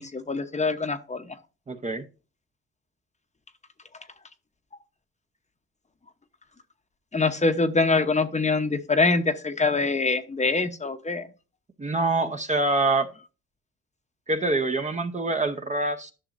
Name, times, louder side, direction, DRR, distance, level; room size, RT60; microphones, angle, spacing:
voice 1, 0.0-1.4 7.1-11.3, left 3 dB, 25° left, 8 dB, 0.9 m, -24 dB
voice 2, 1.7-2.0 11.8-13.1 14.3-16.1, right 2 dB, 25° right, 8 dB, 0.8 m, -25 dB
11.5 x 6.2 x 2.6 m, 0.32 s
cardioid pair, 90°, 30 cm